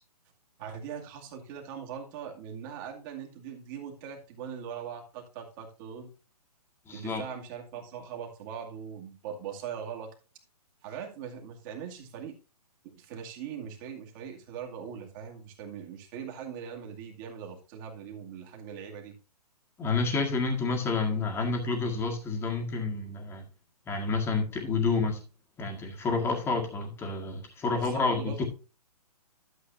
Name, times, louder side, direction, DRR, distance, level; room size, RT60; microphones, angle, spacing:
voice 1, 0.6-6.1 6.9-10.1 10.8-12.4 12.8-19.2 27.7-28.4, right 7 dB, 30° right, 1 dB, 2.2 m, -41 dB
voice 2, 6.9-7.2 19.8-23.4 23.9-25.2 25.6-28.4, left 4 dB, 10° left, 2 dB, 1.7 m, -29 dB
12.0 x 7.5 x 2.7 m, 0.32 s
figure-of-eight pair, 130°, 20 cm